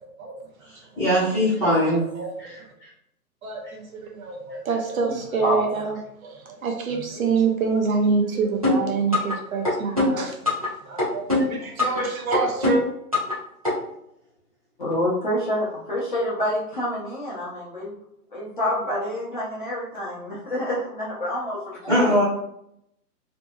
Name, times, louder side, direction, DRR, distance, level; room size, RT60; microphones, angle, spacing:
voice 1, 1.0-2.1 2.4-2.6 21.9-22.2, equal, 5° left, -14 dB, 1.0 m, -20 dB
voice 2, 1.6-2.5 3.4-10.4 10.8-12.8, right 4 dB, 60° right, 2 dB, 0.7 m, -26 dB
voice 3, 5.1-5.6 14.8-18.0 18.3-22.2, left 1 dB, 35° left, -7 dB, 0.6 m, -28 dB
sound 1, 8.6-9.4 9.6-10.7 11.0-12.0 12.3-13.4 13.6-13.7, left 2 dB, 25° right, 0.4 m, -22 dB
2.6 x 2.5 x 2.2 m, 0.75 s
hypercardioid pair, 160°, 47 cm